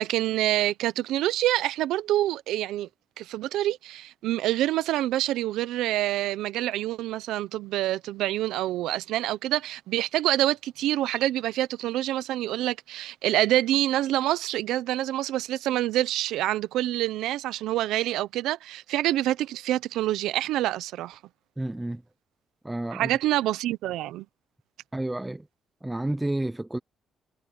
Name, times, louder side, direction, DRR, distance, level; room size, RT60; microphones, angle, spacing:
voice 1, 0.0-2.9 3.2-21.2 22.9-24.2, right 14 dB, 90° right, 0.7 m, -26 dB
voice 2, 21.6-22.0 22.6-23.1 24.9-25.4 25.8-26.8, right 1 dB, 10° right, 0.6 m, -30 dB
cardioid pair, 90°, 0 cm